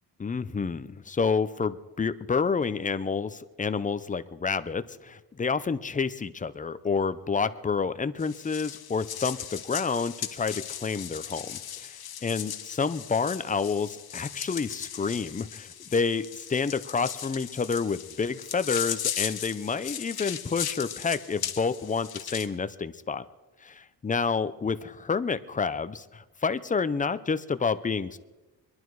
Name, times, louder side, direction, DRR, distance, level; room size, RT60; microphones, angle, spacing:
voice 1, 0.2-12.0 12.2-23.2 23.6-23.7 24.0-28.2, left 5 dB, 20° left, 13 dB, 0.5 m, -29 dB
sound 1, 8.2-22.5, left 10 dB, 60° left, 1.1 m, -37 dB
23.0 x 11.5 x 4.7 m, 1.1 s
wide cardioid pair, 125°, 42 cm